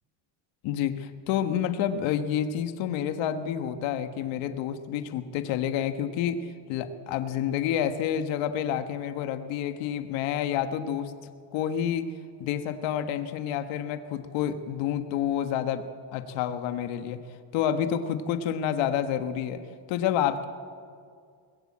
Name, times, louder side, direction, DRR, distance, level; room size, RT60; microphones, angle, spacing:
voice 1, 0.6-6.4 6.7-11.1 11.5-12.0 12.4-15.8 16.1-17.2 17.5-19.6 19.9-20.5, left 9 dB, 70° left, 9 dB, 1.6 m, -29 dB
23.0 x 20.5 x 8.7 m, 2.2 s
cardioid pair, 175°, 47 cm